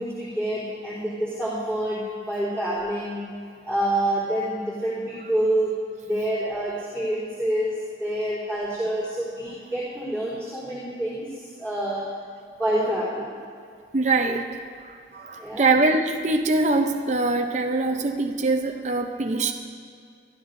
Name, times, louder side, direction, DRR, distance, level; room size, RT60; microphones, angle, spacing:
voice 1, 0.0-3.3 3.6-5.8 6.0-12.1 12.6-13.3 15.4-15.7, right 1 dB, 10° left, -10 dB, 3.7 m, -27 dB
voice 2, 13.9-14.5 14.8-19.5, right 3 dB, 40° right, 4 dB, 0.7 m, -23 dB
24.5 x 13.0 x 2.7 m, 2.3 s
head